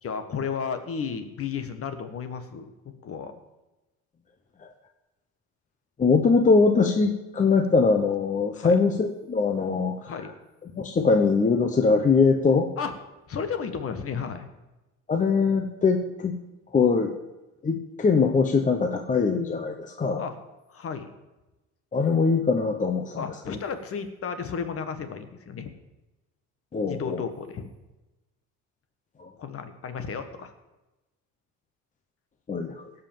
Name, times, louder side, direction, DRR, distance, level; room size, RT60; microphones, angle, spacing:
voice 1, 0.0-3.4 8.5-8.8 10.0-10.3 12.8-12.9 13.3-14.5 20.2-20.4 20.7-21.1 23.2-25.7 26.9-27.7 29.4-30.5, left 6 dB, 40° left, 9 dB, 1.4 m, -33 dB
voice 2, 6.0-9.9 10.7-12.7 15.1-16.3 16.7-17.1 17.6-20.2 21.9-23.6 26.7-27.2 29.2-29.3 32.5-32.7, left 4 dB, 25° left, 4 dB, 0.9 m, -22 dB
17.0 x 5.7 x 7.2 m, 1.0 s
cardioid pair, 120°, 34 cm